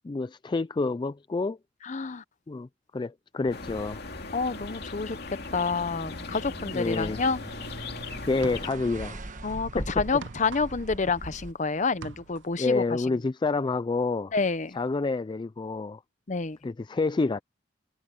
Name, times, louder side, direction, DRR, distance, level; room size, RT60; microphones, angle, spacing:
voice 1, 0.0-1.6 2.5-2.7 2.9-4.0 6.7-7.2 8.3-9.2 9.8-9.9 12.6-14.3 14.7-16.0 16.6-17.4, left 3 dB, 25° left, 0.3 m, -28 dB
voice 2, 1.8-2.2 4.3-7.4 9.4-13.0 14.3-14.8 16.3-16.6, left 4 dB, 40° left, 0.8 m, -28 dB
sound 1, 3.5-8.7, left 3 dB, 60° left, 2.5 m, -39 dB
sound 2, 3.5-11.5, right 1 dB, 45° right, 1.3 m, -42 dB
sound 3, 8.4-9.2 9.5-11.6 11.9-12.6, right 4 dB, 75° right, 0.6 m, -44 dB
head